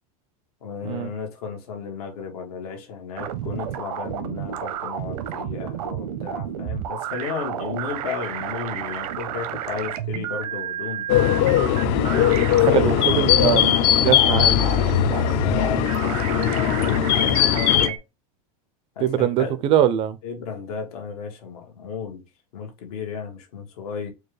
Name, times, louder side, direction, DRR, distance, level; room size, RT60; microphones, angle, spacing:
voice 1, 0.6-11.1 12.0-13.4 14.3-14.7 15.4-18.0 19.0-19.6 20.2-22.2 22.5-24.1, left 6 dB, 80° left, 1.4 m, -33 dB
sound 1, 3.2-18.0, right 10 dB, 85° right, 0.7 m, -31 dB
sound 2, 11.1-17.9, left 11 dB, 45° left, 0.4 m, -19 dB
voice 2, 12.7-13.8 14.0-14.5 19.0-20.2, right 10 dB, 30° right, 0.3 m, -22 dB
4.5 x 2.4 x 3.1 m
supercardioid pair, 155°, 19 cm